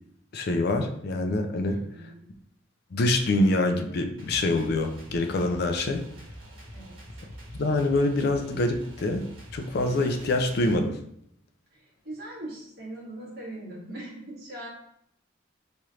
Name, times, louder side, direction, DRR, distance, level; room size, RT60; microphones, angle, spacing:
voice 1, 0.3-1.8 2.9-6.0 7.5-11.0, left 2 dB, 50° left, 5 dB, 0.4 m, -25 dB
voice 2, 1.6-2.3 6.7-7.0 11.7-14.7, right 1 dB, 50° right, -4 dB, 1.2 m, -41 dB
sound 1, 4.2-10.7, equal, 75° right, 1.3 m, -45 dB
4.3 x 3.1 x 2.4 m, 0.72 s
head